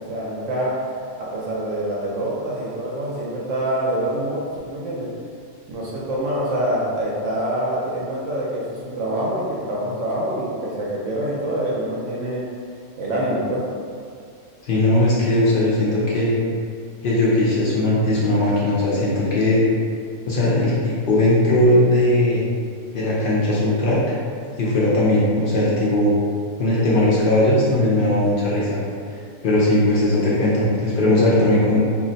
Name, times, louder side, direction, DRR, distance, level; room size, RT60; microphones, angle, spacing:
voice 1, 0.1-0.7 1.2-5.1 5.7-12.5 13.0-13.6, right 1 dB, 70° right, -6 dB, 0.9 m, -25 dB
voice 2, 14.6-16.4 17.0-19.6 20.3-22.4 22.9-24.0 24.6-26.1 26.6-28.8 29.4-31.8, left 1 dB, 65° left, -6 dB, 0.5 m, -18 dB
2.5 x 2.0 x 3.8 m, 2.3 s
omnidirectional pair, 1.4 m